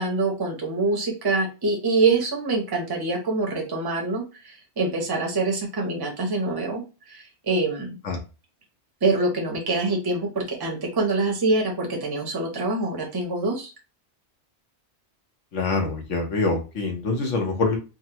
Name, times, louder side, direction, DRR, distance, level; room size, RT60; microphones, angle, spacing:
voice 1, 0.0-6.8 7.1-8.0 9.0-13.7, right 3 dB, 25° right, 1 dB, 0.7 m, -25 dB
voice 2, 15.5-17.8, left 3 dB, 85° left, 2 dB, 1.2 m, -25 dB
3.5 x 2.1 x 2.8 m, 0.31 s
omnidirectional pair, 1.2 m